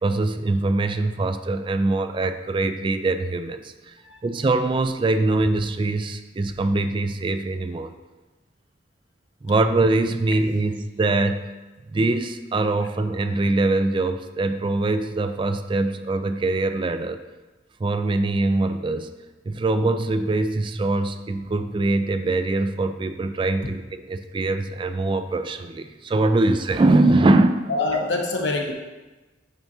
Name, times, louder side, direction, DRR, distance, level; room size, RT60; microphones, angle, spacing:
voice 1, 0.0-3.9 4.2-7.9 9.4-11.4 11.9-17.2 17.8-19.1 19.5-27.7, right 2 dB, 30° right, 9 dB, 0.3 m, -23 dB
voice 2, 27.7-28.7, left 3 dB, 80° left, 1 dB, 1.1 m, -25 dB
9.2 x 5.9 x 2.8 m, 1.2 s
head